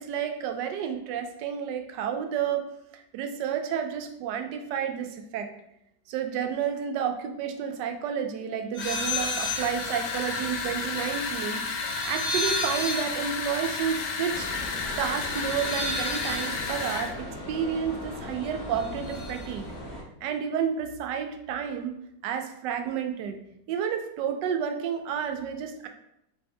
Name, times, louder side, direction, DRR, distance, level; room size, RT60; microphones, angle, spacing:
voice 1, 0.0-2.6 2.9-5.5 6.1-11.6 12.0-14.5 15.0-19.7 20.2-21.9 22.2-23.4 23.7-25.9, right 8 dB, 90° right, 6 dB, 1.2 m, -30 dB
sound 1, 8.7-9.7 10.0-18.2 18.5-19.5, left 1 dB, 40° left, 1.4 m, -35 dB
sound 2, 8.8-17.1, left 4 dB, 80° left, 1.2 m, -32 dB
sound 3, 14.3-20.0, equal, 60° left, 1.5 m, -39 dB
4.7 x 2.6 x 3.4 m, 0.79 s
omnidirectional pair, 1.8 m